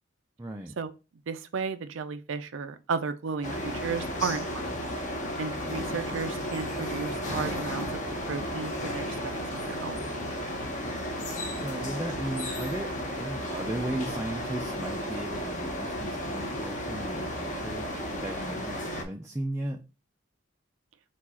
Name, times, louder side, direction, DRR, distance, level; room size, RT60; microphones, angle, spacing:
voice 1, 0.4-0.7 11.5-19.8, right 1 dB, 15° right, 0.4 m, -36 dB
voice 2, 1.3-4.7 5.4-8.0 8.3-10.0, right 5 dB, 70° right, 0.5 m, -34 dB
sound 1, 3.4-19.0, equal, 40° left, 0.9 m, -33 dB
4.5 x 2.4 x 4.2 m
head